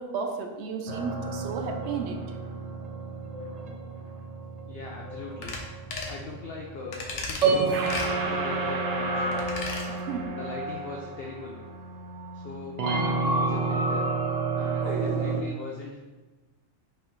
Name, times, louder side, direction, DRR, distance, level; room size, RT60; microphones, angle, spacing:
voice 1, 0.0-2.2 9.9-10.3, right 5 dB, 65° right, 4 dB, 0.8 m, -33 dB
sound 1, 0.9-15.4, right 3 dB, 90° right, 0.3 m, -30 dB
voice 2, 4.7-5.6 6.1-7.9 8.3-9.4 10.4-11.6 12.3-14.0 14.6-16.1, left 3 dB, 60° left, -1 dB, 0.7 m, -40 dB
sound 2, 5.4-5.6 5.9-6.2 6.9-7.5 7.9-8.1 9.3-9.9 10.2-10.3, left 3 dB, 90° left, 1.1 m, -35 dB
5.4 x 3.3 x 3.0 m, 1.2 s
omnidirectional pair, 1.3 m